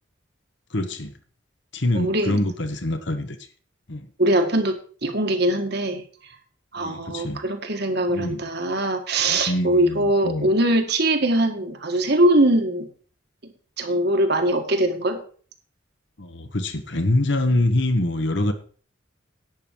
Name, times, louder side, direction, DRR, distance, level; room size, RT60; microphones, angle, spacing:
voice 1, 0.7-1.1 1.7-3.4 3.9-4.1 6.8-7.4 8.1-8.4 9.3-10.5 16.2-18.5, left 1 dB, 65° left, 8 dB, 1.4 m, -25 dB
voice 2, 2.0-2.4 4.2-6.0 6.7-12.9 13.4-13.5 13.8-15.2, right 1 dB, 55° right, 5 dB, 1.8 m, -22 dB
11.0 x 9.0 x 4.7 m, 0.43 s
head